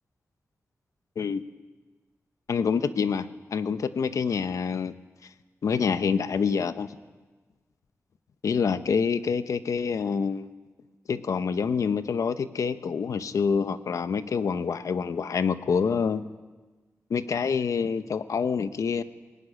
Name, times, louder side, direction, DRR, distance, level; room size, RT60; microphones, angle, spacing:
voice 1, 2.5-4.9 5.6-6.9 8.4-10.5 11.1-16.2 17.1-19.0, left 6 dB, 75° left, 12 dB, 0.9 m, -26 dB
19.5 x 17.0 x 9.8 m, 1.3 s
wide cardioid pair, 125°, 6 cm